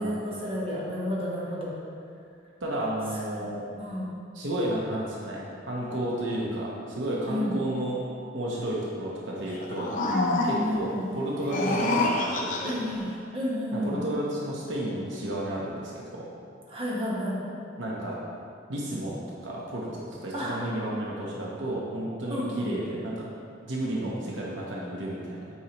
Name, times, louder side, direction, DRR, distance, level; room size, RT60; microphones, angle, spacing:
voice 1, 0.0-1.7 3.3-3.5 3.8-4.1 7.3-7.6 10.4-11.0 12.6-13.1 13.3-14.0 16.7-17.4 20.3-20.5 22.3-22.7, equal, 30° right, -6 dB, 1.3 m, -31 dB
voice 2, 2.6-3.6 4.3-9.9 10.4-12.8 13.7-16.3 17.8-18.2 18.7-23.3 23.6-25.4, right 1 dB, 70° right, -5 dB, 1.0 m, -32 dB
sound 1, 9.5-10.8 11.4-13.0, left 2 dB, 40° left, 0.7 m, -27 dB
8.6 x 4.7 x 3.0 m, 2.4 s
head